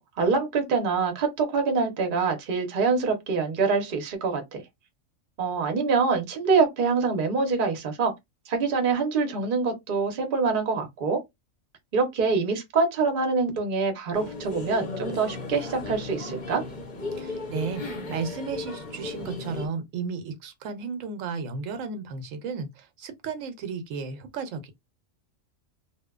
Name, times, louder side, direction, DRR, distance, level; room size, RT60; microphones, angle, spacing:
voice 1, 0.0-4.6 5.4-8.1 8.5-11.2 11.9-16.6, right 4 dB, 50° right, 0.7 m, -25 dB
sound 1, 14.1-19.7, left 3 dB, 45° left, 0.7 m, -35 dB
voice 2, 17.1-24.7, right 5 dB, 80° right, 1.0 m, -34 dB
2.8 x 2.1 x 2.3 m
omnidirectional pair, 1.3 m